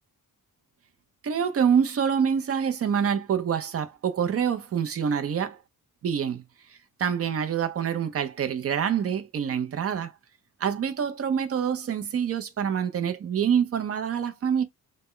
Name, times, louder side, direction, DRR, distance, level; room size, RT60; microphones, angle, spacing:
voice 1, 1.2-5.6 6.0-6.4 7.0-10.1 10.6-14.6, right 7 dB, 40° right, 0.4 m, -26 dB
2.1 x 2.0 x 3.6 m
wide cardioid pair, 160°, 38 cm